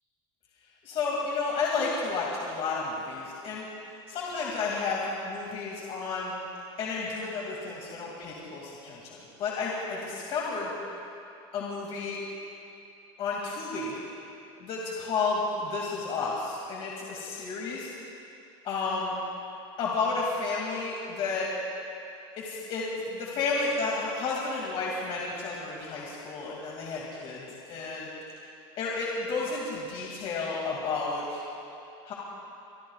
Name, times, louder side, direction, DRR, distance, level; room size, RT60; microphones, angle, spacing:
voice 1, 0.8-3.7 4.1-6.3 6.8-10.7 11.5-12.2 13.2-14.0 14.6-17.9 18.6-19.2 19.8-21.5 22.3-28.1 28.8-31.4 32.1-32.2, left 4 dB, 50° left, -4 dB, 2.5 m, -32 dB
24.5 x 23.5 x 2.4 m, 2.7 s
supercardioid pair, 125°, 13 cm